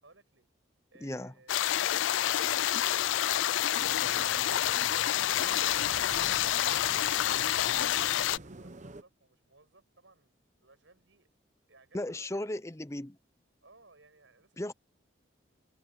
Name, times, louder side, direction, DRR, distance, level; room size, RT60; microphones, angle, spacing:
voice 1, 0.0-0.5 8.3-11.3 11.7-12.6 13.6-14.7, right 3 dB, 75° right, 5.8 m, -62 dB
voice 2, 1.0-1.3 11.9-13.2 14.6-14.7, left 1 dB, 15° left, 0.5 m, -36 dB
sound 1, 1.5-8.4, left 12 dB, 75° left, 0.4 m, -28 dB
sound 2, 3.8-9.0, right 2 dB, 40° right, 1.0 m, -48 dB
head